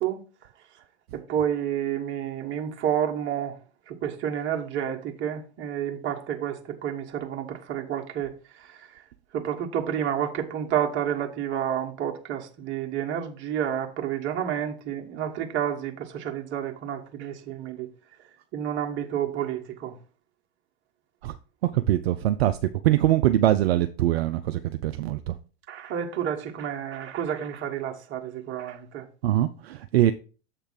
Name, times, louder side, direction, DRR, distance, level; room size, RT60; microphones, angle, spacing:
voice 1, 1.1-3.6 3.9-8.3 8.6-8.8 9.3-17.9 18.5-19.9 25.7-29.1, right 9 dB, 35° right, 1.4 m, -30 dB
voice 2, 21.7-22.6 22.8-25.3 29.2-30.1, right 13 dB, 65° right, 0.5 m, -23 dB
7.4 x 3.3 x 5.6 m
figure-of-eight pair, 90°, 33 cm